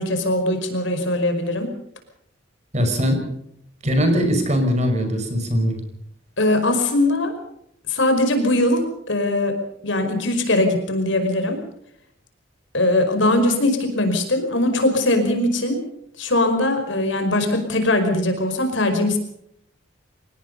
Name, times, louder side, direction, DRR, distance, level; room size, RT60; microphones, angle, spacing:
voice 1, 0.0-1.7 6.4-7.4 7.9-9.6 9.8-11.6 12.7-15.8 16.2-19.2, left 1 dB, 70° left, 7 dB, 5.2 m, -20 dB
voice 2, 2.7-3.2 3.8-5.8, equal, 35° right, 5 dB, 5.6 m, -20 dB
25.5 x 19.5 x 5.4 m, 0.73 s
head